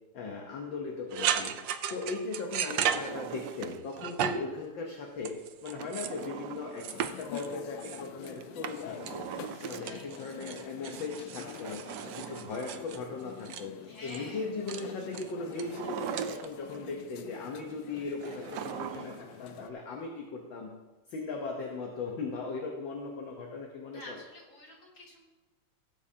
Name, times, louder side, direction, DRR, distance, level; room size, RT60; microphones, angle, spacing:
voice 1, 0.1-1.5 1.9-5.3 5.6-9.2 9.6-11.8 12.0-13.7 14.0-20.7 21.1-24.2, left 3 dB, 65° left, 1 dB, 1.7 m, -38 dB
sound 1, 1.1-3.6 3.9-4.6 5.2-6.2 6.8-8.4 8.7-9.5 9.9-13.6 14.1-14.3 14.7-14.8 15.1-15.6 16.2-16.5, right 9 dB, 70° right, 1.2 m, -35 dB
Drawer open or close, 2.5-4.1 5.8-7.2 8.4-10.2 11.4-13.1 15.5-16.8 18.2-19.3 19.6-19.7, right 9 dB, 90° right, 0.9 m, -40 dB
sound 2, 6.9-19.7, left 10 dB, 85° left, 1.6 m, -46 dB
voice 2, 9.7-10.1 13.8-14.4 23.9-25.2, left 1 dB, 35° left, -3 dB, 2.9 m, -49 dB
17.5 x 8.5 x 2.8 m, 1.1 s
omnidirectional pair, 2.4 m